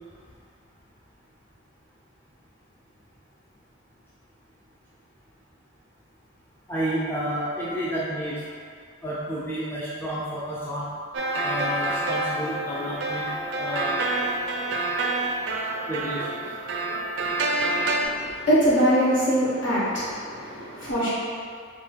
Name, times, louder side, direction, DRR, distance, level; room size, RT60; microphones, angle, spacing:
voice 1, 6.7-8.4 9.0-10.9 11.4-13.3 13.6-14.1 15.9-16.5, equal, 10° left, -8 dB, 0.5 m, -30 dB
sound 1, 11.1-18.1, right 2 dB, 60° right, 0.4 m, -27 dB
voice 2, 17.6-21.1, equal, 60° left, -9 dB, 1.3 m, -23 dB
4.6 x 2.8 x 3.4 m, 2.3 s
head